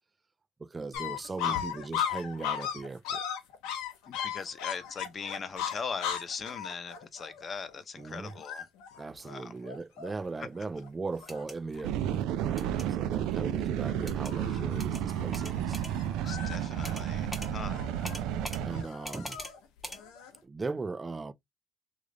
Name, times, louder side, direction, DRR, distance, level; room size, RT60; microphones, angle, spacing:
voice 1, 0.6-3.2 8.0-8.3 9.0-15.8 18.6-19.4 20.4-21.3, right 3 dB, 20° right, 0.4 m, -38 dB
sound 1, 0.9-10.4 10.8-10.9 11.2-11.8 12.1-12.8 13.2-13.5 13.9-20.4, left 9 dB, 85° left, 0.9 m, -38 dB
voice 2, 4.1-8.7 9.2-9.5 16.1-17.9, left 5 dB, 35° left, 0.7 m, -40 dB
sound 2, 11.2-11.6 12.6-12.9 14.1-14.3 14.8-15.0 15.3-15.9 16.8-17.1 17.3-17.5 18.0-18.6 19.0-19.5 19.8-20.0, equal, 5° left, 1.1 m, -41 dB
sound 3, 11.8-18.8, right 10 dB, 80° right, 0.4 m, -32 dB
3.2 x 2.4 x 3.8 m
cardioid pair, 100°, 0 cm